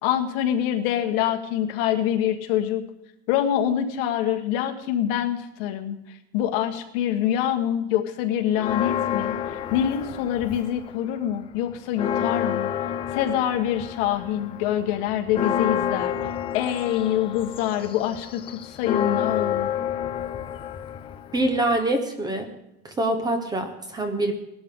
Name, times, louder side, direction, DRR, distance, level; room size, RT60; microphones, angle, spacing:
voice 1, 0.0-2.8 3.3-12.7 13.1-16.2 16.5-19.7, left 10 dB, 55° left, 6 dB, 1.6 m, -25 dB
Church bell, 8.5-10.9 11.3-11.4 11.7-21.8, left 9 dB, 15° left, 0.4 m, -29 dB
voice 2, 21.3-22.5 22.8-24.3, right 1 dB, 10° right, 6 dB, 1.0 m, -25 dB
19.0 x 12.5 x 3.7 m, 0.85 s
cardioid pair, 175°, 33 cm